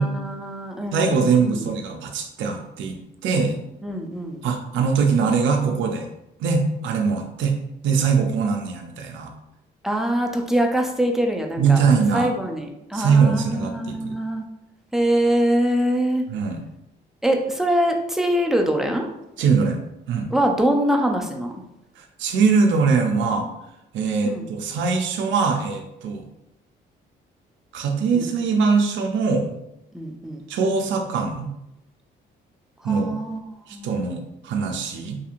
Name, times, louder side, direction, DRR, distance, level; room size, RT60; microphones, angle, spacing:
voice 1, 0.0-1.7 3.8-4.4 9.8-11.8 12.1-14.4 14.9-16.2 17.2-19.1 20.3-21.6 24.2-24.5 28.1-28.3 29.9-30.5 32.8-33.4 33.7-34.0, right 1 dB, ahead, 2 dB, 0.4 m, -23 dB
voice 2, 0.9-3.6 4.4-6.1 6.4-7.5 7.8-9.3 11.6-12.3 12.9-14.2 16.3-16.6 19.4-19.8 20.1-20.3 22.0-23.5 23.9-26.2 27.7-29.5 30.5-31.5 32.8-33.2 33.7-35.2, right 5 dB, 70° right, 3 dB, 0.4 m, -22 dB
2.8 x 2.7 x 2.4 m, 0.86 s
cardioid pair, 90°, 20 cm